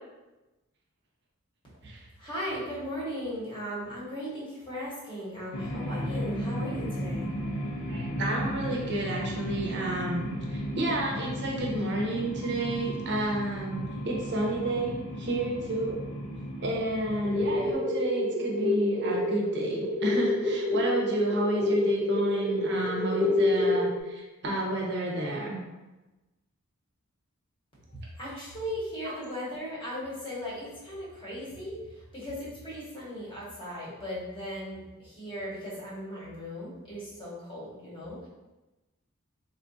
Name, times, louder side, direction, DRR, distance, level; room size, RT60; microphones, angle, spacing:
voice 1, 2.2-7.3 27.9-38.3, equal, 25° left, -8 dB, 0.9 m, -37 dB
sound 1, 5.5-17.7, equal, 85° left, 0.6 m, -35 dB
voice 2, 7.9-16.0 16.6-25.6, right 1 dB, 50° right, -2 dB, 0.7 m, -31 dB
sound 2, 17.2-24.0, left 2 dB, 5° left, 0.3 m, -28 dB
3.5 x 2.3 x 2.6 m, 1.1 s
head